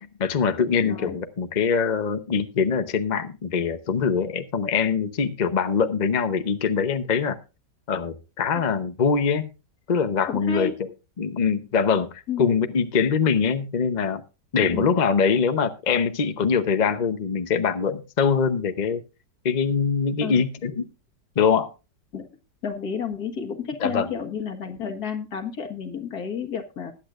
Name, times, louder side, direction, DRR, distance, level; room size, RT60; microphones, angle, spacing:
voice 1, 0.2-7.4 7.9-9.5 9.9-10.9 11.2-14.2 14.5-19.0 19.4-20.9 21.4-21.7 23.8-24.1, left 6 dB, 45° left, 9 dB, 0.6 m, -23 dB
voice 2, 0.8-1.2 10.3-10.7 12.3-12.5 14.6-14.9 20.2-20.4 22.1-22.3 22.6-26.9, left 6 dB, 60° left, 4 dB, 2.1 m, -31 dB
20.5 x 8.5 x 2.5 m, 0.30 s
omnidirectional pair, 1.9 m